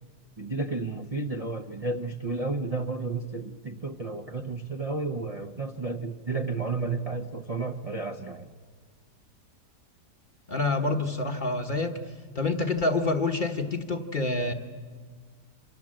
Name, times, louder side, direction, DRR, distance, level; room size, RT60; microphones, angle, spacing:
voice 1, 0.4-8.5, right 3 dB, 35° right, 5 dB, 0.6 m, -32 dB
voice 2, 10.5-12.0 12.3-14.5, left 3 dB, 35° left, 6 dB, 1.1 m, -27 dB
27.5 x 25.0 x 7.6 m, 1.5 s
omnidirectional pair, 1.8 m